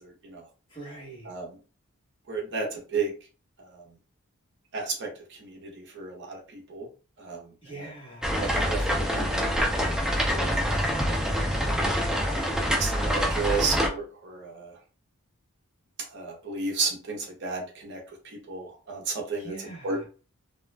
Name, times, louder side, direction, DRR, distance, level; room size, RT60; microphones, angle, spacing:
voice 1, 0.0-0.4 1.3-1.5 2.3-3.1 3.7-3.8 4.7-5.1 5.4-6.9 7.2-7.4 7.8-7.9 8.4-9.7 10.0-10.6 12.2-14.7 16.1-18.0 18.2-19.5 19.8-20.1, right 4 dB, 50° right, 0.7 m, -33 dB
voice 2, 0.7-1.3 7.6-8.3 19.4-20.1, right 3 dB, 25° left, 1.0 m, -42 dB
sound 1, 8.2-13.9, equal, 5° right, 0.4 m, -26 dB
2.3 x 2.2 x 3.1 m
head